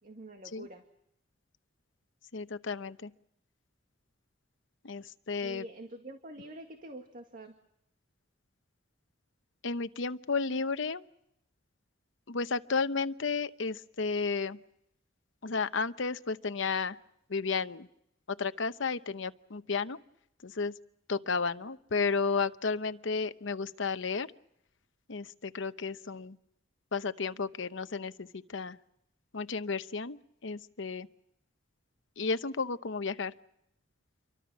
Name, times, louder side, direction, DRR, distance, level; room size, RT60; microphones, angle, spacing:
voice 1, 0.0-0.8 5.4-7.5, right 1 dB, 45° right, 5 dB, 2.0 m, -46 dB
voice 2, 2.3-3.1 4.8-5.6 9.6-11.0 12.3-14.6 15.4-17.0 17.3-17.9 18.3-20.0 20.4-20.7 21.1-24.3 25.1-26.4 26.9-28.8 29.3-31.1 32.2-33.3, left 4 dB, 70° left, 12 dB, 0.9 m, -33 dB
28.0 x 24.0 x 6.2 m, 0.79 s
head